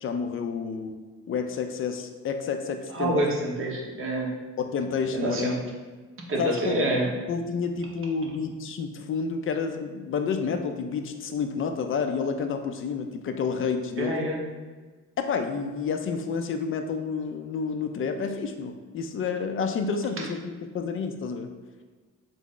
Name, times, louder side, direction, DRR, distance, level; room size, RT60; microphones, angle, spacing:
voice 1, 0.0-1.0 1.3-3.2 4.6-5.5 6.4-6.8 7.3-14.2 15.2-21.5, left 5 dB, 45° left, 6 dB, 0.4 m, -29 dB
voice 2, 2.9-4.3 5.2-5.6 6.3-7.1 14.0-14.4 20.2-20.3, right 1 dB, 45° right, -1 dB, 0.9 m, -27 dB
3.7 x 2.0 x 3.6 m, 1.4 s
cardioid pair, 90°, 30 cm